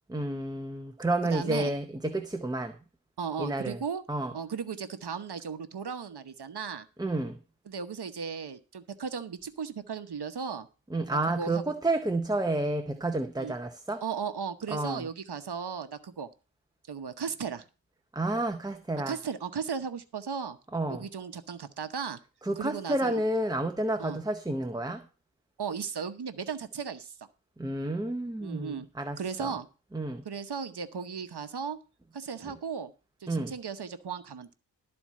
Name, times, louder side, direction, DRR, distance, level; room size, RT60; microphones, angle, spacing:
voice 1, 0.1-2.7 3.4-3.8 4.1-4.3 7.0-7.4 10.9-14.0 14.7-15.0 18.1-19.2 20.7-21.1 22.4-25.0 27.6-29.5 29.9-30.2 33.3-33.5, right 2 dB, 10° right, 0.7 m, -30 dB
voice 2, 1.2-1.7 3.2-4.0 4.3-6.9 7.7-10.7 11.1-11.7 13.4-13.5 14.0-16.3 16.9-17.6 19.1-20.6 20.9-22.2 22.6-23.2 24.0-24.2 25.6-27.1 28.4-28.9 29.2-29.7 30.2-31.8 32.1-32.9 33.2-34.5, right 6 dB, 65° right, 1.0 m, -36 dB
13.0 x 4.4 x 7.3 m
wide cardioid pair, 110°, 43 cm